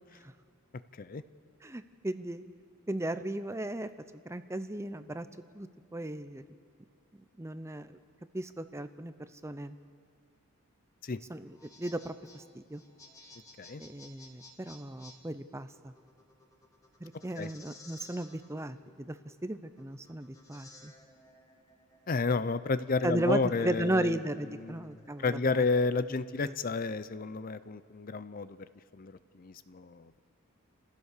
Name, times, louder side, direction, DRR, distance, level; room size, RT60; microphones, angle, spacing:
voice 1, 1.6-2.4 2.9-5.3 5.5-6.4 7.1-8.0 8.3-9.8 11.3-12.8 13.8-15.9 17.0-20.9 23.0-25.6 26.5-26.6, right 1 dB, 15° right, 11 dB, 0.6 m, -36 dB
sound 1, 11.4-26.1, left 2 dB, 15° left, 1.6 m, -57 dB
voice 2, 22.1-24.2 24.6-28.7 28.9-30.2, left 3 dB, 40° left, 14 dB, 0.5 m, -31 dB
28.0 x 15.5 x 6.7 m, 2.1 s
head